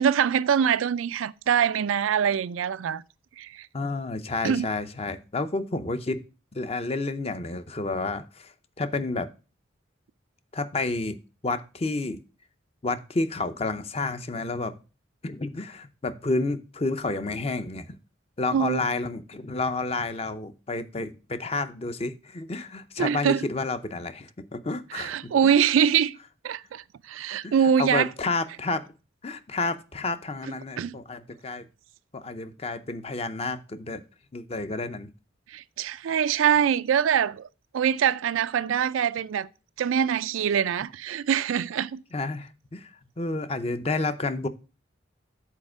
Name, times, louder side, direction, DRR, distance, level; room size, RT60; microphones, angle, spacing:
voice 1, 0.0-3.0 3.4-3.7 4.4-4.7 18.5-18.8 23.0-23.4 24.9-26.2 26.4-28.1 30.8-31.0 35.5-37.5 37.7-39.5 39.8-42.0, right 8 dB, 85° right, 0.4 m, -24 dB
voice 2, 3.7-6.2 6.5-9.3 10.5-11.2 11.4-12.2 12.8-14.7 15.2-17.9 18.4-25.6 27.4-27.5 27.8-28.8 29.2-31.6 32.1-34.0 34.3-35.1 42.1-42.9 43.2-44.5, left 3 dB, 30° left, 0.6 m, -30 dB
7.4 x 4.3 x 6.1 m
head